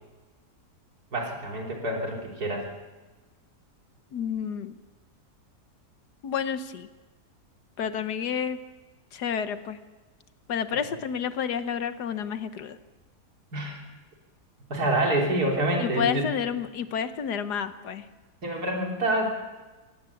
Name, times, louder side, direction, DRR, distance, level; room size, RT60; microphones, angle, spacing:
voice 1, 1.1-2.7 10.7-10.8 13.5-13.8 14.7-16.3 18.4-19.3, right 1 dB, 70° right, -1 dB, 4.0 m, -27 dB
voice 2, 4.1-4.7 6.2-6.9 7.8-8.6 9.1-9.8 10.5-12.8 15.8-18.0, left 7 dB, 85° left, 11 dB, 1.6 m, -30 dB
23.0 x 17.5 x 7.1 m, 1.2 s
omnidirectional pair, 1.7 m